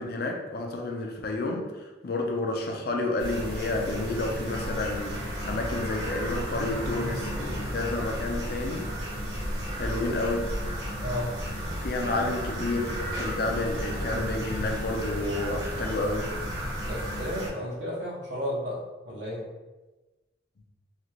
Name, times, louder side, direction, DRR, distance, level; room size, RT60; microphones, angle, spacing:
voice 1, 0.0-5.2 5.4-8.9 9.8-10.4 11.8-16.3, left 2 dB, 55° left, 2 dB, 0.5 m, -30 dB
sound 1, 3.2-17.5, equal, 55° right, 1.3 m, -33 dB
voice 2, 11.0-11.3 16.8-19.5, equal, 75° right, -6 dB, 1.3 m, -33 dB
4.0 x 2.5 x 3.0 m, 1.2 s
head